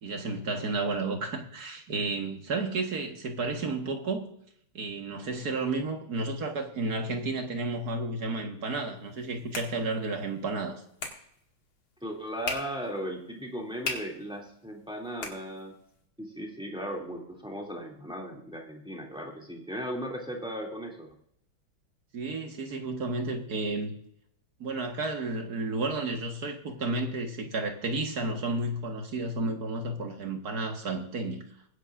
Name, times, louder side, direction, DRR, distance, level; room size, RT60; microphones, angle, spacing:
voice 1, 0.0-4.3 4.8-10.8 22.1-23.9 24.6-31.4, right 3 dB, 50° right, 3 dB, 1.9 m, -32 dB
sound 1, 9.0-16.0, left 3 dB, 80° left, 2.9 m, -42 dB
voice 2, 12.0-15.7 16.2-21.2, equal, ahead, -1 dB, 2.2 m, -37 dB
22.5 x 10.0 x 2.5 m, 0.70 s
omnidirectional pair, 2.3 m